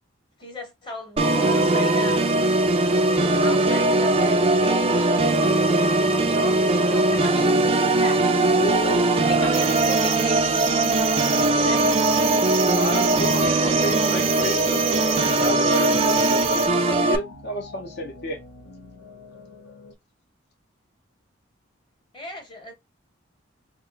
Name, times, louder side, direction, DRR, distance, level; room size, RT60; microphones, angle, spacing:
voice 1, 0.4-7.6 8.0-11.1 11.5-11.9 22.1-22.7, left 2 dB, 25° left, 0.9 m, -37 dB
Organ, 1.2-17.2, right 2 dB, 25° right, 0.3 m, -20 dB
sound 1, 1.4-19.9, left 2 dB, 90° left, 0.8 m, -40 dB
voice 2, 8.6-9.0 12.6-18.4, equal, 50° left, 0.7 m, -31 dB
sound 2, 9.5-16.7, right 9 dB, 75° right, 0.6 m, -29 dB
2.9 x 2.1 x 3.9 m
head